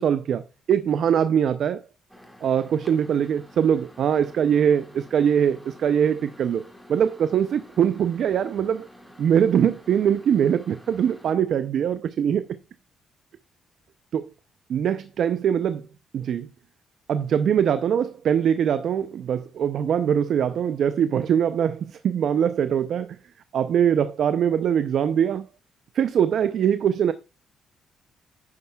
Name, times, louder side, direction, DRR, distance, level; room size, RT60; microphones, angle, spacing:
voice 1, 0.0-1.8 2.4-6.6 6.9-8.9 9.2-12.6 14.1-14.3 14.7-15.8 16.1-16.5 17.1-23.1 23.5-25.5 25.9-27.1, right 8 dB, 65° right, 0.5 m, -22 dB
Microwave oven, 2.1-11.3, left 1 dB, ahead, 2.0 m, -49 dB
10.0 x 9.6 x 2.3 m
cardioid pair, 90°, 0 cm